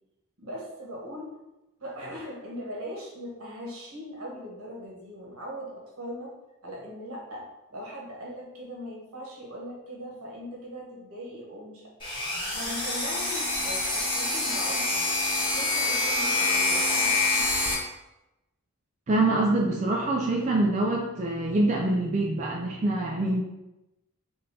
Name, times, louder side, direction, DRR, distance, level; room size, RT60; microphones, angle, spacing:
voice 1, 0.4-1.3 1.8-6.3 6.6-7.4 7.7-11.8 12.5-15.1 15.4-17.5, equal, 70° right, -3 dB, 1.3 m, -40 dB
sound 1, 12.0-17.7, left 2 dB, 20° left, 1.2 m, -26 dB
voice 2, 19.1-23.4, right 2 dB, 30° right, -2 dB, 0.4 m, -25 dB
3.8 x 2.6 x 4.1 m, 0.95 s
head